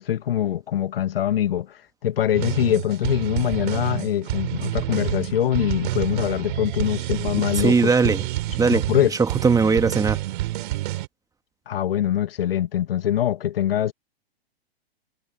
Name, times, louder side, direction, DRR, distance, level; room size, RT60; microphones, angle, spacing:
voice 1, 0.0-1.7 2.0-8.1 8.7-9.1 11.7-13.9, left 11 dB, 65° left, 1.8 m, -23 dB
sound 1, 2.3-11.1, right 16 dB, 50° right, 3.5 m, -28 dB
voice 2, 7.5-8.3 8.6-10.2, right 5 dB, 10° right, 2.2 m, -20 dB
figure-of-eight pair, 110°, 31 cm